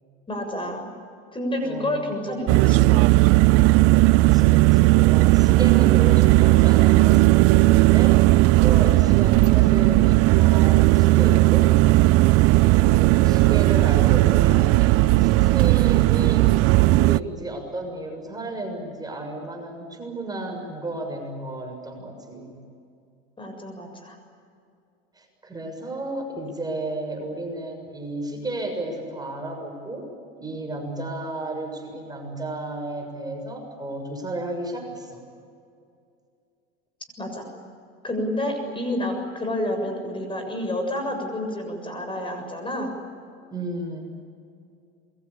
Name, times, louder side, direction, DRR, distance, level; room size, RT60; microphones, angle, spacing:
voice 1, 0.3-0.9 1.3-3.1 23.4-24.2 37.2-37.5 38.0-42.9, left 1 dB, 15° left, 4 dB, 7.1 m, -29 dB
voice 2, 1.6-2.2 4.2-8.2 8.5-11.7 12.4-22.6 25.1-30.1 30.4-35.2 43.5-44.1, right 2 dB, 15° right, 2 dB, 6.9 m, -33 dB
sound 1, 2.5-17.2, right 20 dB, 50° right, 0.6 m, -16 dB
27.5 x 22.5 x 8.6 m, 2.4 s
hypercardioid pair, 95°, 30 cm